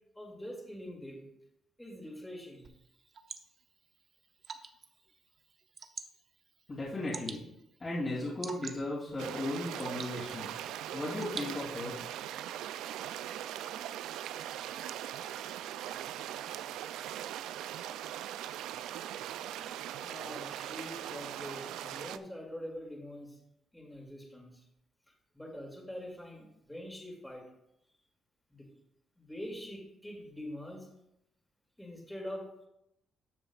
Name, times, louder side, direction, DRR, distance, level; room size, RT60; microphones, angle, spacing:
voice 1, 0.1-1.3 1.8-2.7 20.0-23.4 23.7-24.6 25.3-27.4 28.5-28.7 29.2-30.9 31.8-32.4, equal, 5° left, -1 dB, 2.5 m, -44 dB
Water / Drip, 2.6-12.0, right 5 dB, 50° right, 0.7 m, -49 dB
voice 2, 6.7-7.4 7.8-10.5 10.9-12.0, left 2 dB, 35° left, -8 dB, 2.7 m, -36 dB
sound 1, 9.2-22.2, right 11 dB, 90° right, 0.3 m, -40 dB
12.5 x 7.0 x 2.4 m, 0.81 s
cardioid pair, 90°, 0 cm